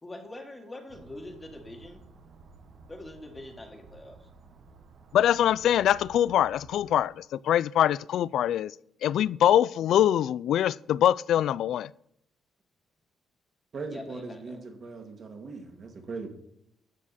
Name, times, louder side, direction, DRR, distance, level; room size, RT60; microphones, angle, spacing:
voice 1, 0.0-2.0 2.9-4.3 13.9-14.6, left 1 dB, 15° left, 1.8 m, -44 dB
sound 1, 0.9-7.1, right 4 dB, 60° right, 1.2 m, -53 dB
voice 2, 5.1-8.8 9.0-11.9, left 11 dB, 75° left, 0.3 m, -23 dB
voice 3, 13.7-16.3, right 4 dB, 45° right, 2.0 m, -39 dB
11.5 x 7.5 x 4.2 m
cardioid pair, 130°, 0 cm